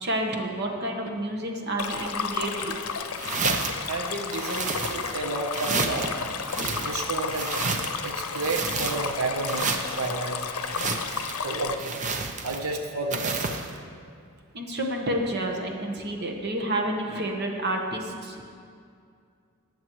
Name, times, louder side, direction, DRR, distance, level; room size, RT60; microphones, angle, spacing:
voice 1, 0.0-2.7 14.5-18.4, right 1 dB, 50° right, 2 dB, 1.1 m, -29 dB
Stream, 1.8-11.7, left 5 dB, 85° left, 0.6 m, -32 dB
sound 1, 3.2-3.9 4.3-5.2 5.5-6.1 6.5-8.0 8.3-9.2 9.4-10.1 10.6-11.4 11.8-12.7 13.1-13.7, right 4 dB, 35° right, 0.6 m, -30 dB
voice 2, 3.9-6.3 6.8-10.8 11.4-12.0 12.4-13.5, right 3 dB, 80° right, 3 dB, 0.9 m, -31 dB
18.5 x 7.2 x 3.1 m, 2.3 s
head